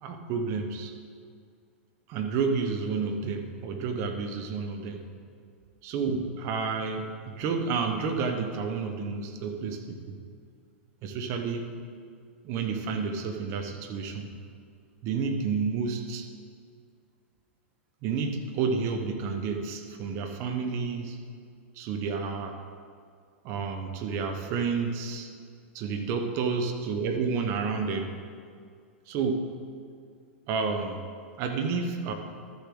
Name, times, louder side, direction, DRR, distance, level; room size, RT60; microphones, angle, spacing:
voice 1, 0.0-0.9 2.1-5.0 5.8-10.2 11.0-11.7 12.4-14.3 15.0-16.3 18.0-21.2 21.8-22.6 23.4-25.3 25.7-28.2 29.1-29.5 30.5-31.0 31.4-32.1, right 5 dB, 45° right, 5 dB, 1.2 m, -30 dB
13.0 x 7.2 x 3.9 m, 2.2 s
hypercardioid pair, 110°, 7 cm